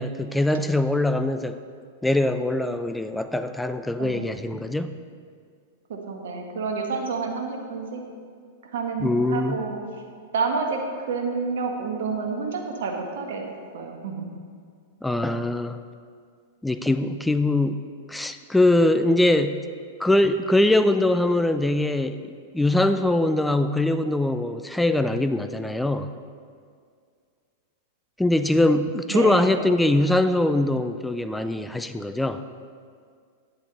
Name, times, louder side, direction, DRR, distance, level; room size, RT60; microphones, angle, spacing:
voice 1, 0.0-1.6 2.0-4.9 9.0-9.6 15.0-15.8 16.6-17.8 18.1-19.6 20.0-22.2 22.5-26.1 28.2-32.4, left 1 dB, 5° left, 10 dB, 0.3 m, -22 dB
voice 2, 4.0-4.3 5.9-8.0 8.7-9.8 10.3-10.8 11.1-13.5 13.7-14.2 29.1-29.7, right 4 dB, 65° right, 2 dB, 1.3 m, -29 dB
8.7 x 8.6 x 4.0 m, 2.1 s
figure-of-eight pair, 100°, 0 cm